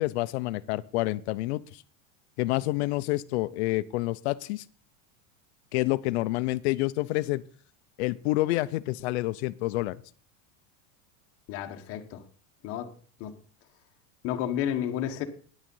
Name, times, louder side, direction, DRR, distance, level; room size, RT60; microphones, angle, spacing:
voice 1, 0.0-1.8 2.4-4.6 5.7-7.4 8.0-10.0, left 19 dB, 55° left, 0.6 m, -28 dB
voice 2, 11.5-12.2 12.6-12.9 13.2-13.3 14.2-15.3, left 10 dB, 35° left, 1.1 m, -31 dB
9.9 x 9.0 x 5.4 m
supercardioid pair, 175°, 40 cm